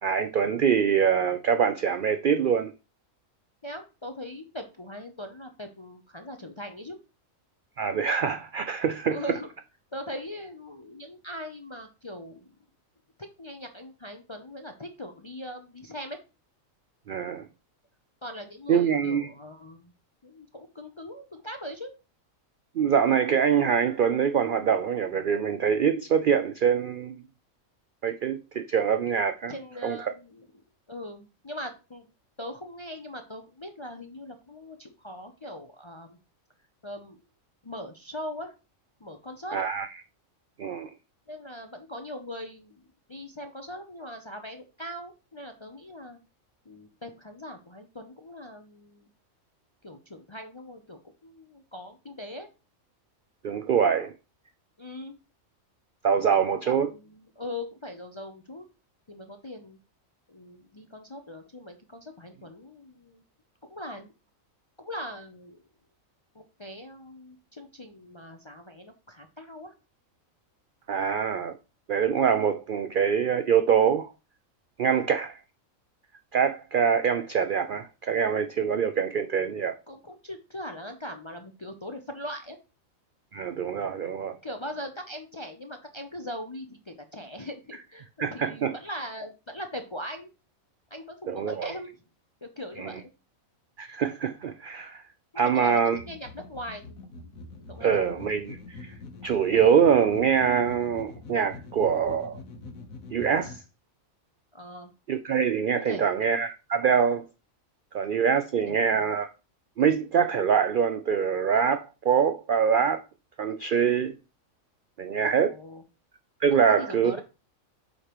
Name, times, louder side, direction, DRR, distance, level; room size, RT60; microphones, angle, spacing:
voice 1, 0.0-2.7 7.8-9.2 17.1-17.5 18.7-19.3 22.8-27.2 28.0-29.5 29.8-30.0 39.5-39.9 40.6-40.9 53.4-54.1 56.0-56.9 70.9-71.6 71.9-74.1 74.8-75.4 76.3-79.7 83.3-84.4 88.2-88.7 91.3-91.8 92.8-92.9 93.8-95.0 95.4-96.0 97.8-98.9 99.2-102.4 103.1-103.6 105.1-107.3 107.9-109.3 109.8-113.0 113.4-114.2 115.0-115.5 116.4-117.2, right 7 dB, 65° right, 0.5 m, -24 dB
voice 2, 3.6-7.0 9.1-9.5 9.9-12.5 13.2-16.2 18.2-19.9 20.2-21.9 29.5-32.1 32.4-36.2 36.8-37.2 37.6-38.5 39.0-39.6 41.3-46.2 46.7-49.1 49.8-52.5 54.8-55.2 56.3-56.4 56.7-58.7 59.1-59.8 60.3-63.2 63.7-64.1 64.8-65.6 66.3-69.7 79.9-82.6 84.4-90.3 90.9-92.0 92.4-93.1 95.3-97.4 97.7-98.4 104.5-104.9 105.8-106.1 108.6-109.0 115.4-115.8 116.5-117.2, left 1 dB, 35° left, 0.5 m, -40 dB
sound 1, 96.0-103.6, left 3 dB, 80° left, 1.4 m, -44 dB
8.1 x 5.1 x 3.0 m
omnidirectional pair, 1.4 m